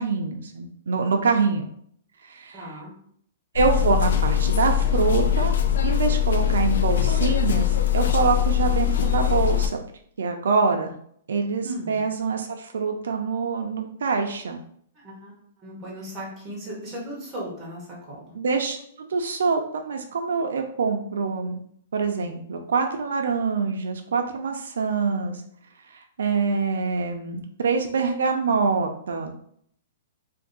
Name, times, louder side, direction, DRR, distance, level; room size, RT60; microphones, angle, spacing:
voice 1, 0.0-1.6 2.3-2.6 3.5-5.6 5.8-9.8 10.2-11.0 11.3-14.6 18.4-21.6 21.9-25.4 26.2-29.3, right 4 dB, 80° right, 4 dB, 0.5 m, -25 dB
voice 2, 2.5-2.9 11.6-12.0 14.9-18.4, right 1 dB, 10° right, -6 dB, 1.0 m, -37 dB
sound 1, 3.6-9.7, left 10 dB, 60° left, 0.4 m, -22 dB
2.6 x 2.6 x 3.8 m, 0.64 s
hypercardioid pair, 180°, 0 cm